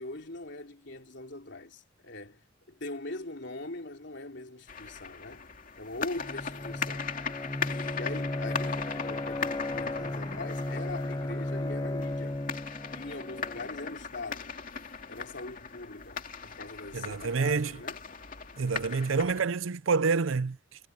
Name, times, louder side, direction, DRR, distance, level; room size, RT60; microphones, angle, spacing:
voice 1, 0.0-5.5 5.8-7.1 7.7-12.4 12.9-14.6 15.1-18.0 19.1-19.3, left 2 dB, 60° left, 3.5 m, -42 dB
sound 1, 4.7-19.4, left 6 dB, 45° left, 2.5 m, -39 dB
Bowed string instrument, 6.2-14.0, left 1 dB, 20° left, 0.8 m, -35 dB
voice 2, 16.9-17.8 18.6-20.9, right 4 dB, 85° right, 0.6 m, -28 dB
head